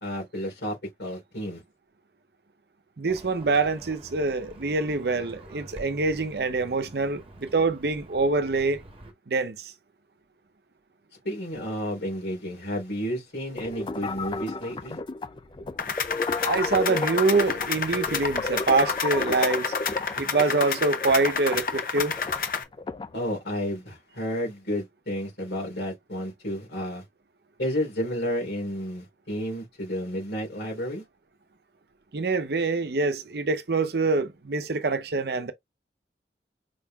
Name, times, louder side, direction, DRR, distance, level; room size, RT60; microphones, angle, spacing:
voice 1, 0.0-1.6 11.2-15.0 23.1-27.0 27.6-31.0, equal, 75° left, 3.3 m, -31 dB
voice 2, 3.0-8.8 9.3-9.7 16.4-19.7 20.2-22.1 32.1-35.5, right 3 dB, 65° right, 0.7 m, -25 dB
Livestock farm animals working animals, 3.1-9.1, right 1 dB, 30° right, 0.8 m, -47 dB
sound 1, 13.6-23.2, left 3 dB, 25° left, 0.3 m, -33 dB
sound 2, 15.8-22.6, left 6 dB, 50° left, 0.8 m, -30 dB
5.2 x 3.6 x 2.3 m
head